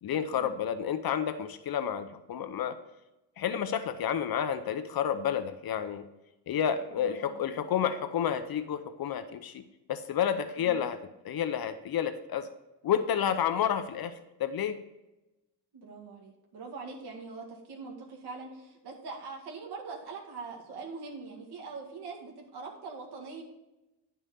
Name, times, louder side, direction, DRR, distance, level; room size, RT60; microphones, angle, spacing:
voice 1, 0.0-2.8 3.4-6.0 6.5-9.6 9.9-12.5 12.8-14.8, left 8 dB, 60° left, 10 dB, 0.7 m, -30 dB
voice 2, 6.9-7.4 10.6-10.8 15.7-23.4, right 4 dB, 70° right, -2 dB, 2.0 m, -43 dB
11.0 x 5.6 x 4.2 m, 0.99 s
cardioid pair, 125°, 41 cm